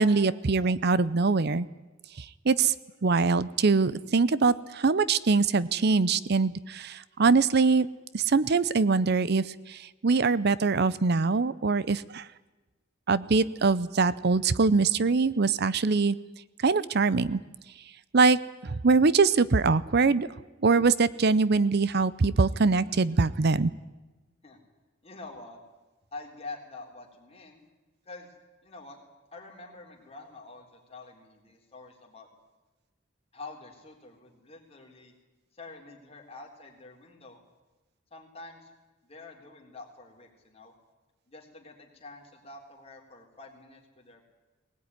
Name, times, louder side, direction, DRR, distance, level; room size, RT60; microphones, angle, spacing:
voice 1, 0.0-1.7 2.4-2.7 3.0-7.9 8.1-12.3 13.1-16.2 16.6-17.4 18.1-20.3 20.6-23.7, right 4 dB, 55° right, 18 dB, 0.6 m, -23 dB
voice 2, 25.0-25.6 26.1-27.6 28.0-28.3 28.6-29.0 29.3-32.3 33.3-35.1 35.5-37.4 38.1-38.7 39.0-40.7 41.3-44.3, left 3 dB, 30° left, 1 dB, 3.7 m, -46 dB
20.0 x 19.0 x 9.7 m, 1.2 s
head